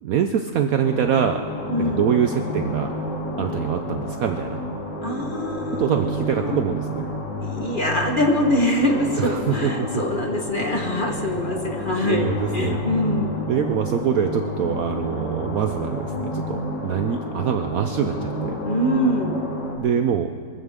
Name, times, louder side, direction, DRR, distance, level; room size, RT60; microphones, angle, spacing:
voice 1, 0.0-1.4 1.8-2.9 3.4-4.6 5.8-7.1 9.2-9.9 12.0-12.9 13.5-18.6 19.6-20.3, right 8 dB, 65° right, 7 dB, 0.9 m, -24 dB
sound 1, 0.8-19.8, left 1 dB, 70° left, 2.7 m, -30 dB
voice 2, 1.7-2.1 5.0-6.6 7.4-13.4 18.6-19.4, left 1 dB, 30° left, 2 dB, 1.2 m, -24 dB
25.0 x 14.5 x 3.6 m, 2.1 s
omnidirectional pair, 1.9 m